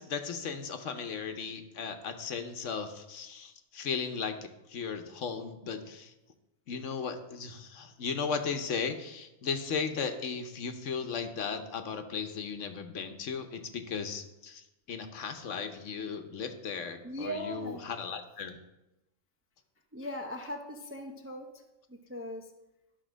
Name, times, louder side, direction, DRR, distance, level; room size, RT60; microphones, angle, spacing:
voice 1, 0.0-6.1 6.7-18.6, left 5 dB, 65° left, 7 dB, 1.1 m, -36 dB
voice 2, 17.0-17.8 19.9-21.6 21.9-22.5, equal, 15° right, 2 dB, 0.5 m, -39 dB
11.5 x 4.2 x 6.2 m, 0.96 s
omnidirectional pair, 1.4 m